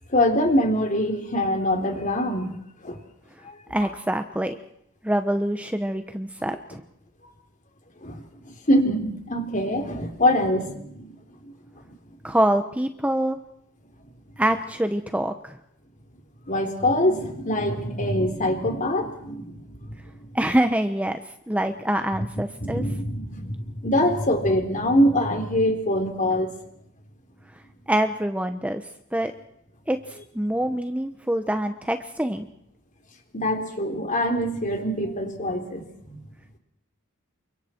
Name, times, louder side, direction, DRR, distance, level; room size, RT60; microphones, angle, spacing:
voice 1, 0.1-2.6 2.8-3.0 3.5-3.6 8.0-8.2 8.7-11.1 16.5-19.8 22.6-26.5 33.3-36.2, left 1 dB, 35° left, 4 dB, 3.6 m, -24 dB
voice 2, 3.7-4.6 5.0-6.8 12.2-13.4 14.4-15.6 20.3-22.8 27.9-28.8 29.1-29.3 29.9-32.4, right 1 dB, 5° right, 7 dB, 1.0 m, -25 dB
29.0 x 25.0 x 4.5 m, 0.75 s
head